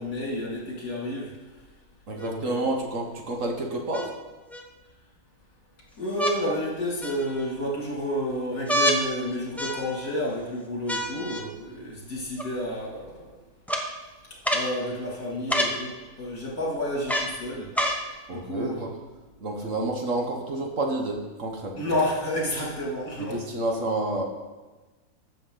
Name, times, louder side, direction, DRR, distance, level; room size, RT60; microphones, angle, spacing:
voice 1, 0.0-1.3 2.2-2.8 6.0-13.4 14.5-17.7 18.3-19.0 21.8-23.4, left 1 dB, 60° left, -4 dB, 3.0 m, -30 dB
voice 2, 2.1-4.1 18.3-18.9 19.4-21.8 23.2-24.2, right 2 dB, 55° right, 2 dB, 1.5 m, -29 dB
sound 1, 2.2-2.3 3.9-4.6 6.1-6.4 7.0-7.5 8.7-9.0 9.6-10.1 10.9-11.4 12.4-12.5 13.7-13.8 14.4-14.7 15.5-15.8 17.1-17.3 17.7-18.0 18.9-19.0, equal, ahead, 0.8 m, -27 dB
14.5 x 7.0 x 3.9 m, 1.2 s
omnidirectional pair, 1.7 m